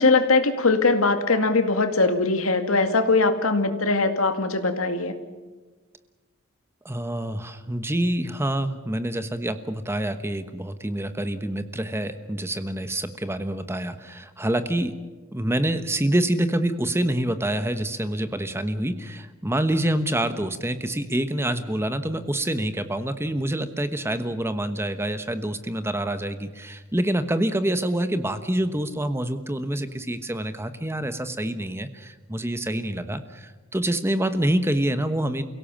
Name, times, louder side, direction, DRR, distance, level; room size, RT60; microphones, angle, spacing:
voice 1, 0.0-5.1, left 3 dB, 80° left, 7 dB, 2.2 m, -21 dB
voice 2, 6.8-14.9 15.3-35.4, right 1 dB, 10° right, 10 dB, 1.2 m, -26 dB
29.5 x 17.0 x 7.3 m, 1.3 s
head